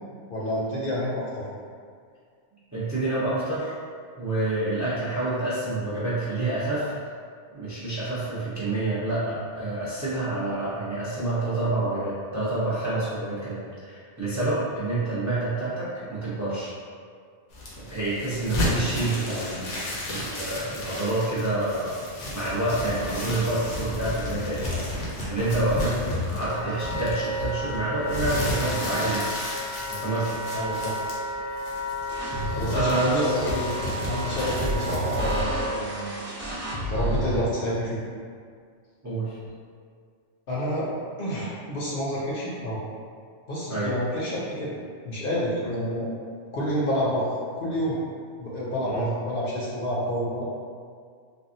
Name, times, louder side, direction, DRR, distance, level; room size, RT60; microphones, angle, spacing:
voice 1, 0.3-1.5 30.5-31.0 32.5-33.7 34.1-36.1 36.9-38.0 40.5-40.9 41.2-42.8 43.5-44.8 45.0-46.1 46.5-47.3 47.6-48.0 48.4-50.4, equal, 55° left, -6 dB, 0.7 m, -28 dB
voice 2, 2.7-3.8 4.2-6.9 7.5-16.7 17.9-21.9 22.3-29.4 29.8-30.4 32.7-33.4 37.3-37.4 39.0-39.4 43.7-43.9 45.6-45.8 48.9-49.1, right 2 dB, 20° right, -11 dB, 0.5 m, -28 dB
sound 1, 17.5-35.4, left 1 dB, 85° left, 1.0 m, -33 dB
Wind instrument woodwind instrument, 26.5-35.8, equal, 80° right, 1.0 m, -33 dB
sound 2, 32.1-37.4, equal, 45° right, 0.9 m, -31 dB
3.4 x 2.3 x 2.6 m, 2.1 s
omnidirectional pair, 1.2 m